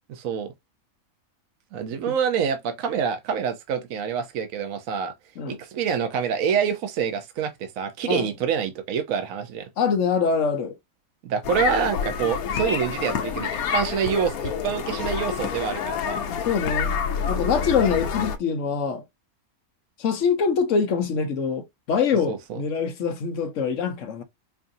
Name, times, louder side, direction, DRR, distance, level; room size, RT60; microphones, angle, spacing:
voice 1, 0.1-0.5 1.7-5.1 5.5-9.7 11.2-16.2 22.3-22.6, right 7 dB, 75° right, 1.1 m, -26 dB
voice 2, 9.8-10.7 16.3-17.0 17.3-19.0 20.0-24.2, left 6 dB, 65° left, 1.0 m, -24 dB
sound 1, 11.4-18.4, left 7 dB, 90° left, 1.2 m, -28 dB
4.7 x 2.5 x 2.6 m
omnidirectional pair, 1.5 m